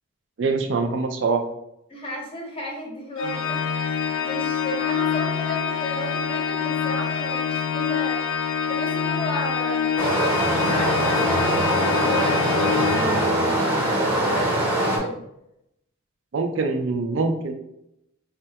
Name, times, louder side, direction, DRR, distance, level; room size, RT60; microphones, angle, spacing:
voice 1, 0.4-1.4 16.3-17.5, right 4 dB, 60° right, 5 dB, 0.4 m, -24 dB
voice 2, 1.9-8.4 8.7-9.9 10.5-15.1, left 1 dB, 25° left, -1 dB, 0.7 m, -34 dB
Organ, 3.2-13.8, left 7 dB, 70° left, 0.3 m, -26 dB
Stream, 10.0-15.0, right 1 dB, 10° right, 0.7 m, -22 dB
4.1 x 2.3 x 2.8 m, 0.80 s
head